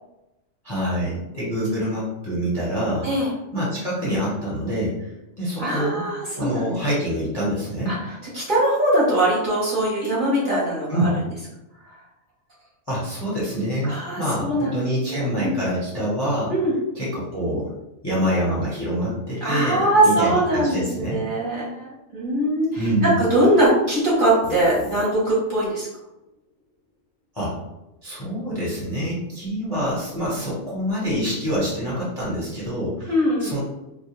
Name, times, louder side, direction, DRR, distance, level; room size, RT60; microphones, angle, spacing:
voice 1, 0.6-3.1 3.5-5.1 5.4-6.1 6.4-8.0 10.9-11.2 12.9-16.5 16.9-17.7 18.0-21.2 22.8-23.2 27.3-27.6 28.0-33.6, equal, 25° left, -7 dB, 0.6 m, -26 dB
voice 2, 5.6-6.7 7.9-8.0 8.3-11.0 13.8-15.6 16.5-16.7 19.4-25.9 33.1-33.5, right 1 dB, 45° right, -7 dB, 0.8 m, -21 dB
sound 1, 24.4-25.7, left 2 dB, 65° left, 0.7 m, -35 dB
2.3 x 2.2 x 2.8 m, 0.94 s
omnidirectional pair, 1.4 m